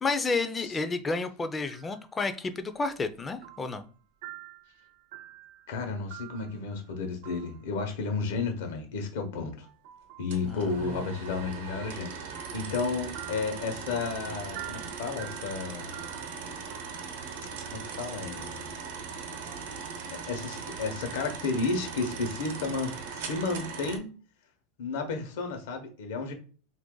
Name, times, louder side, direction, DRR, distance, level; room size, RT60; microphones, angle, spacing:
voice 1, 0.0-3.8 10.5-10.9, left 3 dB, 15° left, 10 dB, 0.3 m, -31 dB
sound 1, 1.6-2.1 2.5-3.9 4.2-6.9 7.2-7.8 9.6-10.4 12.3-17.7 19.5-20.8, right 14 dB, 65° right, 0.4 m, -48 dB
voice 2, 5.7-9.7 10.2-15.9 17.7-18.7 20.1-24.1 24.8-26.3, left 4 dB, 80° left, 5 dB, 0.9 m, -32 dB
sound 2, 10.3-24.0, right 5 dB, 80° right, 0.8 m, -39 dB
2.8 x 2.5 x 3.7 m, 0.39 s
supercardioid pair, 140°, 0 cm